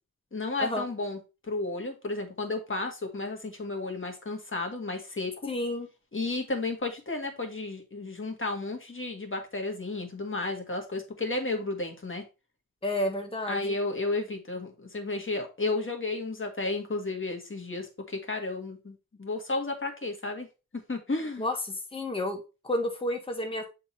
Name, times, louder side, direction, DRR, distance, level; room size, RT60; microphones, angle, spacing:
voice 1, 0.3-1.2 1.5-5.3 6.1-12.2 13.5-20.5 20.9-21.4, left 2 dB, 35° left, 3 dB, 1.9 m, -32 dB
voice 2, 5.4-5.9 12.8-13.7 21.4-23.6, left 1 dB, 15° left, 2 dB, 1.3 m, -31 dB
6.9 x 3.9 x 4.3 m, 0.29 s
wide cardioid pair, 80°, 36 cm